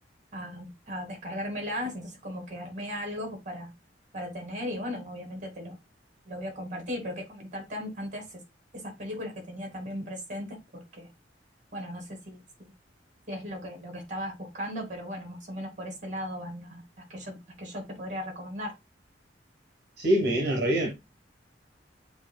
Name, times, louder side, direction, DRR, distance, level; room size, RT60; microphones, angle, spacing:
voice 1, 0.3-3.7 4.1-5.8 6.3-8.3 8.7-11.1 11.7-12.7 13.3-16.8 17.1-18.7, equal, 45° right, 2.2 m, -37 dB
voice 2, 20.0-20.9, equal, 60° right, 1.4 m, -24 dB
7.3 x 2.9 x 2.3 m
head